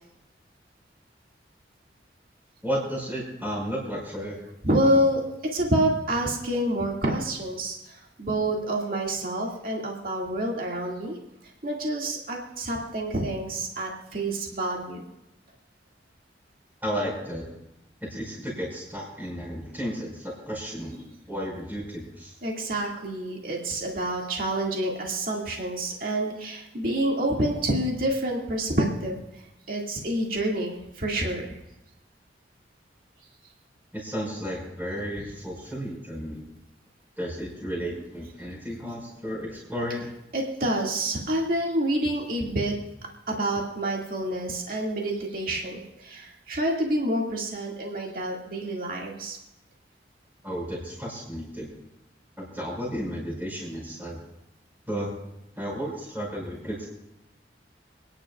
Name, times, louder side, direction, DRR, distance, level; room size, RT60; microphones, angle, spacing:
voice 1, 2.6-4.4 16.8-17.4 18.1-22.3 33.9-36.4 37.2-40.1 50.4-51.7 52.4-54.2 54.9-55.1 55.5-56.9, equal, 10° right, -4 dB, 5.1 m, -33 dB
voice 2, 4.6-5.2 5.5-11.2 11.6-15.0 22.4-29.2 29.7-31.5 40.3-42.7 43.3-49.4, right 1 dB, 50° right, -1 dB, 2.1 m, -27 dB
28.5 x 10.5 x 2.4 m, 0.89 s
head